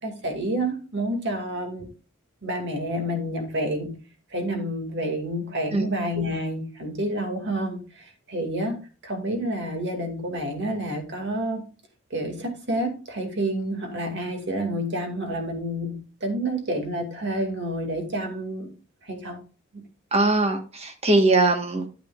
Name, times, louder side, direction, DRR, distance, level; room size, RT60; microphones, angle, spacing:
voice 1, 0.0-1.9 2.4-3.9 4.3-8.8 9.0-11.6 12.1-18.7 19.0-19.4 19.7-19.8, right 1 dB, 55° right, 2.3 m, -29 dB
voice 2, 20.1-21.9, right 2 dB, 30° right, 1.4 m, -21 dB
9.5 x 9.3 x 2.4 m
head